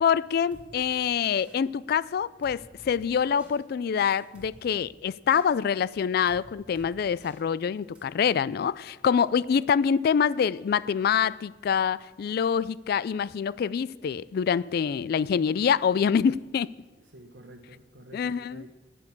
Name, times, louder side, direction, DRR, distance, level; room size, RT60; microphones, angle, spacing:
voice 1, 0.0-16.7 18.1-18.7, left 7 dB, 55° left, 0.3 m, -25 dB
sound 1, 0.5-0.7 1.2-1.6 2.4-2.9 3.4-3.5 4.1-4.5 5.3-5.4 6.3-6.4 6.7-6.9 7.2-7.4 7.9-8.0, right 1 dB, 5° right, 3.1 m, -51 dB
voice 2, 17.1-18.7, right 1 dB, 90° right, 1.2 m, -49 dB
10.5 x 10.0 x 8.4 m
head